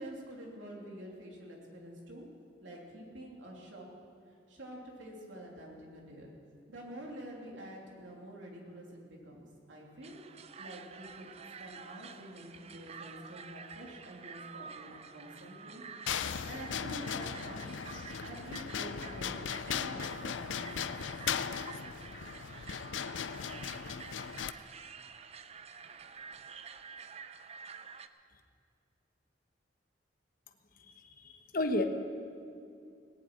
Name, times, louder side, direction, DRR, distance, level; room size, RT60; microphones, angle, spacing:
voice 1, 0.0-2.3 2.6-3.8 4.5-6.3 6.7-9.4 9.7-10.2 10.6-11.3 11.6-15.8 16.2-17.6 18.2-21.1, right 1 dB, 90° right, -2 dB, 3.1 m, -47 dB
sound 1, 10.0-28.1, right 6 dB, 35° right, 0.5 m, -49 dB
sound 2, 16.1-24.5, left 7 dB, 85° left, 0.5 m, -38 dB
voice 2, 30.8-31.8, left 1 dB, 50° left, 5 dB, 1.0 m, -33 dB
18.0 x 7.6 x 9.2 m, 2.5 s
head